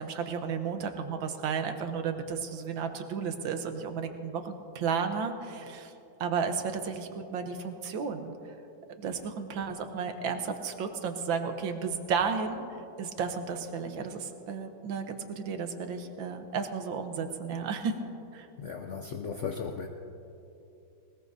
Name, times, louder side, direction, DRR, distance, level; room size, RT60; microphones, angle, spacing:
voice 1, 0.0-5.9 6.2-8.3 9.0-12.6 13.0-17.9 18.3-18.5, right 6 dB, 80° right, 6 dB, 1.7 m, -33 dB
voice 2, 18.6-19.9, left 6 dB, 70° left, 4 dB, 0.7 m, -36 dB
20.5 x 19.5 x 2.7 m, 2.7 s
omnidirectional pair, 2.1 m